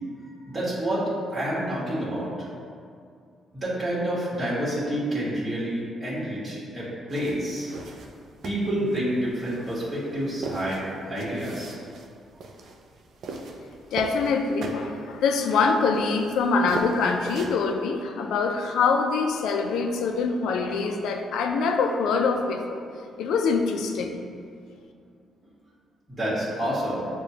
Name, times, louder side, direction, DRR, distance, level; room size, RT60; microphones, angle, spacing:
voice 1, 0.5-1.0 1.3-2.5 3.5-7.7 8.4-10.8 11.1-11.8 26.1-27.1, right 1 dB, 25° right, -8 dB, 1.3 m, -28 dB
sound 1, 7.1-17.7, right 2 dB, 65° right, 0.4 m, -39 dB
voice 2, 13.9-22.8 23.2-24.2, left 4 dB, 80° left, 4 dB, 0.3 m, -24 dB
6.3 x 2.2 x 2.8 m, 2.3 s
cardioid pair, 90°, 0 cm